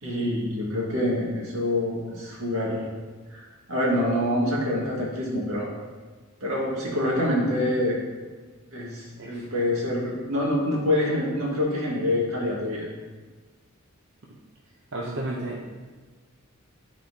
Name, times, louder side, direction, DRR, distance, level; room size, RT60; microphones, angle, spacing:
voice 1, 0.0-2.8 3.3-5.7 6.4-8.0 8.7-12.8, left 1 dB, 80° right, -3 dB, 1.8 m, -26 dB
voice 2, 14.9-15.7, right 1 dB, 60° right, -3 dB, 0.7 m, -33 dB
11.0 x 4.3 x 2.8 m, 1.4 s
head